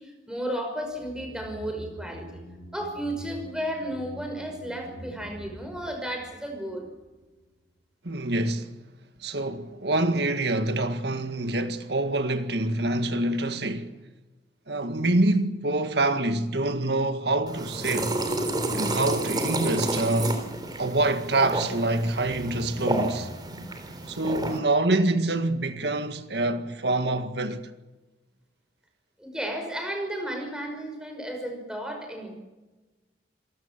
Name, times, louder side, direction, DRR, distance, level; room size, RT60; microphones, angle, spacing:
voice 1, 0.0-2.4 2.7-6.9 29.2-32.3, equal, 5° right, 5.6 m, -33 dB
sound 1, 0.9-7.3 7.6-7.7, right 1 dB, 50° right, 5.8 m, -45 dB
voice 2, 8.0-8.8 9.2-13.9 14.7-18.2 18.7-20.5 20.8-23.3 24.1-27.7, right 2 dB, 65° right, 1.9 m, -26 dB
sound 2, 17.5-24.6, right 2 dB, 25° right, 3.6 m, -30 dB
27.5 x 18.5 x 7.4 m
head